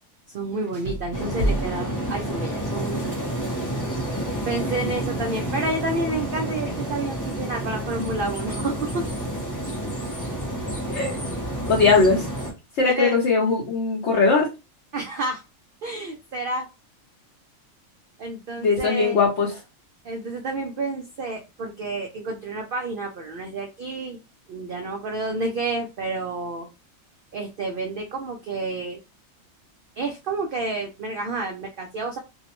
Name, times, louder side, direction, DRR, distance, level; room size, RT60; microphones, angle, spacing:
voice 1, 0.3-3.1 4.5-9.1 12.8-13.2 14.9-15.4 15.8-16.7 18.2-19.2 20.0-24.2 24.5-26.7 27.3-29.0 30.0-32.2, right 2 dB, 65° right, 2 dB, 0.5 m, -30 dB
sound 1, 0.7-2.9, right 1 dB, 40° right, 0.9 m, -30 dB
sound 2, 1.1-12.5, equal, 25° left, 0.4 m, -29 dB
voice 2, 11.7-12.3 12.8-14.5 18.6-19.6, left 4 dB, 60° left, -2 dB, 0.9 m, -20 dB
2.5 x 2.0 x 2.9 m, 0.26 s
omnidirectional pair, 1.4 m